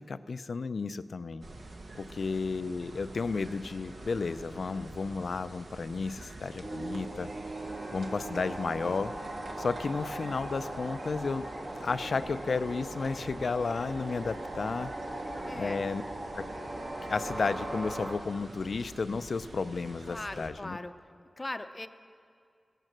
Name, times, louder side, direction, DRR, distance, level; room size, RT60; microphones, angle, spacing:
voice 1, 0.0-1.4 1.9-7.3 7.9-9.1 9.6-11.4 11.8-14.9 15.6-16.0 16.4-16.5 17.0-20.8, left 4 dB, 70° left, 14 dB, 0.4 m, -33 dB
sound 1, 1.4-20.5, right 2 dB, 65° right, 1.2 m, -47 dB
sound 2, 6.6-18.1, right 1 dB, 45° right, 1.5 m, -39 dB
voice 2, 15.5-15.8 20.1-20.9 21.4-21.9, left 2 dB, 25° left, 10 dB, 0.6 m, -39 dB
17.0 x 9.2 x 7.4 m, 2.3 s
wide cardioid pair, 80°, 0 cm